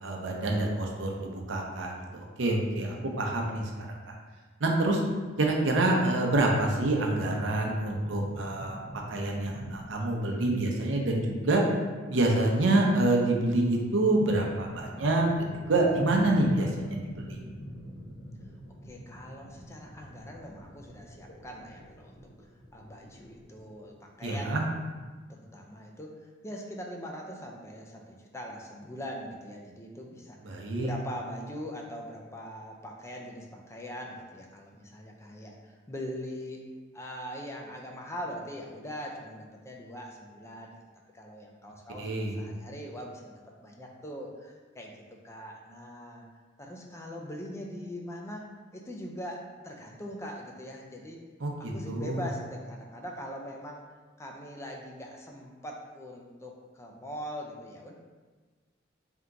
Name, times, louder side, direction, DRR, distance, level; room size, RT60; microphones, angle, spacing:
voice 1, 0.0-4.1 4.6-5.0 5.4-8.8 9.1-11.6 12.1-17.4 24.2-24.6 30.5-30.9 42.0-42.4 51.4-52.2, right 2 dB, 85° right, 0 dB, 0.7 m, -27 dB
sound 1, 7.9-9.9 14.3-23.9 24.4-24.8, equal, 70° left, 0.8 m, -45 dB
voice 2, 18.8-22.3 22.7-24.7 25.3-26.2 26.4-36.6 36.9-40.7 41.1-44.9 45.2-46.3 46.6-51.2 51.7-53.8 54.2-57.9, equal, 15° left, 0 dB, 0.4 m, -42 dB
3.5 x 2.9 x 3.7 m, 1.4 s
head